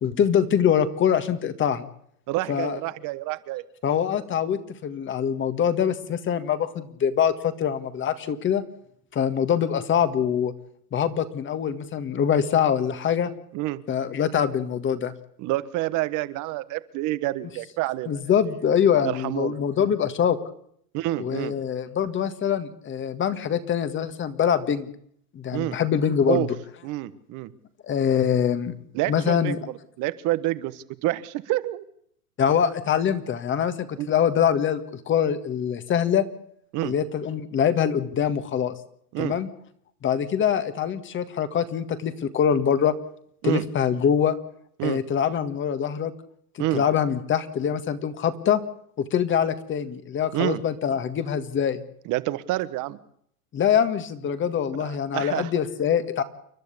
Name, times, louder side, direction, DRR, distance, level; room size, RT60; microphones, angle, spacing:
voice 1, 0.0-1.9 2.5-2.8 3.8-8.6 9.1-10.5 10.9-13.3 13.9-15.1 18.1-20.4 21.2-24.9 25.3-26.5 27.8-28.7 29.1-29.6 32.4-36.2 36.8-38.7 39.2-39.5 40.0-42.9 43.4-44.3 44.8-46.1 46.5-48.6 49.0-51.8 53.5-56.2, left 8 dB, 25° left, 11 dB, 1.8 m, -24 dB
voice 2, 2.3-3.6 13.5-13.8 15.4-18.2 19.0-19.6 20.9-21.5 25.5-25.8 26.3-26.5 26.8-27.5 28.9-31.8 34.0-34.1 36.7-36.9 39.1-39.4 43.4-43.6 44.8-45.0 46.6-46.8 50.3-50.6 52.0-53.0 54.8-55.5, right 17 dB, 40° right, 15 dB, 1.4 m, -28 dB
29.5 x 11.5 x 8.5 m, 0.68 s
hypercardioid pair, 125°, 46 cm